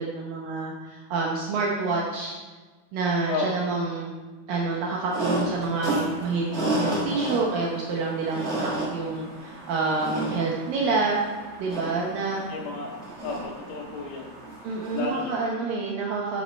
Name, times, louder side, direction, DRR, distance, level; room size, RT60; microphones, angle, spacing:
voice 1, 0.0-2.4 2.9-4.1 4.5-11.2 11.6-12.4 14.6-16.4, right 3 dB, 75° right, -2 dB, 2.7 m, -28 dB
sound 1, 5.1-15.4, right 1 dB, 35° right, 1.1 m, -32 dB
voice 2, 12.5-12.9 13.2-14.4 14.9-15.4, left 4 dB, 70° left, -2 dB, 2.3 m, -32 dB
8.4 x 8.3 x 4.4 m, 1.3 s
omnidirectional pair, 4.3 m